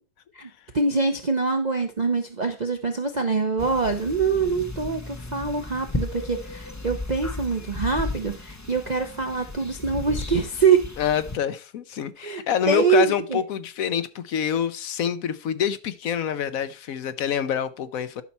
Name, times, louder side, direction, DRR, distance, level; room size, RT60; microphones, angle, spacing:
voice 1, 0.7-10.8 12.2-13.4, right 5 dB, 40° right, 6 dB, 0.7 m, -24 dB
sound 1, 3.6-11.4, left 2 dB, 25° left, 0.3 m, -35 dB
voice 2, 11.0-18.2, left 9 dB, 65° left, 12 dB, 1.1 m, -26 dB
11.5 x 5.8 x 4.2 m, 0.34 s
omnidirectional pair, 1.7 m